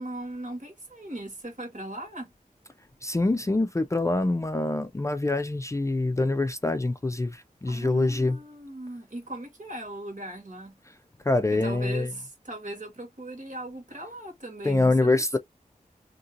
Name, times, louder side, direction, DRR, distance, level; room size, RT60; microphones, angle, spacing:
voice 1, 0.0-2.3 7.6-10.8 11.5-15.4, right 1 dB, 60° right, 1.7 m, -38 dB
voice 2, 3.0-8.4 11.3-12.1 14.6-15.3, left 2 dB, 20° left, 0.4 m, -25 dB
2.9 x 2.6 x 2.5 m
wide cardioid pair, 60°, 15 cm